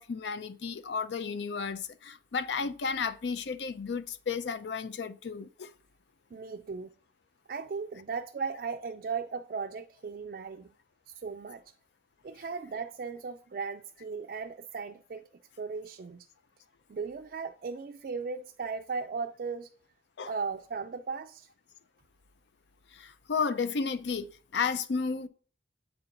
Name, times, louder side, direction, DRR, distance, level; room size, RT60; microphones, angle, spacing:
voice 1, 0.0-5.7 20.2-20.3 22.9-25.3, left 5 dB, 80° left, 0.5 m, -33 dB
voice 2, 6.3-6.9 7.5-10.7 11.1-11.6 12.2-15.2 15.6-16.3 16.9-19.7 20.3-21.5, right 5 dB, 55° right, 0.3 m, -37 dB
7.7 x 4.4 x 3.8 m
head